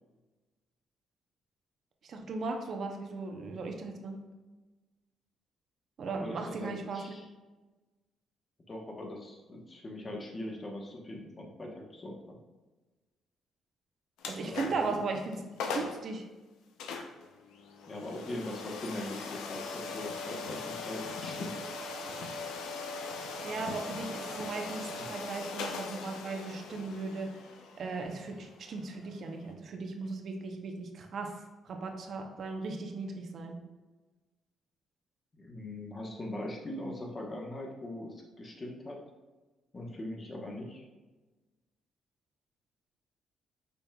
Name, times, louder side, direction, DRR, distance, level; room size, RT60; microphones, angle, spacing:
voice 1, 2.0-4.3 6.0-7.0 14.2-15.4 15.7-16.2 23.4-27.5 27.8-33.6, right 3 dB, 60° right, 3 dB, 0.7 m, -37 dB
voice 2, 6.0-7.2 8.7-12.4 14.4-15.0 17.9-21.6 35.3-39.0 39.7-40.8, left 1 dB, 30° left, 0 dB, 1.1 m, -41 dB
sound 1, 14.2-15.0 15.3-15.4 15.6-16.0 16.8-29.5, left 4 dB, 90° left, 0.5 m, -40 dB
5.3 x 4.3 x 2.3 m, 1.2 s
cardioid pair, 90°, 0 cm